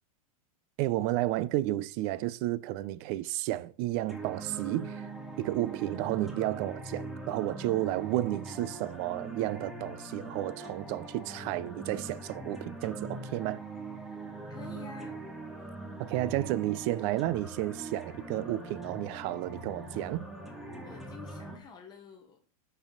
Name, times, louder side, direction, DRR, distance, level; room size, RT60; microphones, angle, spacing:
voice 1, 0.8-5.1 5.4-13.6 16.0-20.2, right 15 dB, 40° right, 0.4 m, -32 dB
sound 1, 4.1-21.6, right 2 dB, ahead, 1.0 m, -42 dB
voice 2, 14.5-15.2 20.8-22.4, left 5 dB, 25° left, 0.7 m, -48 dB
5.5 x 4.9 x 3.9 m
supercardioid pair, 140°, 18 cm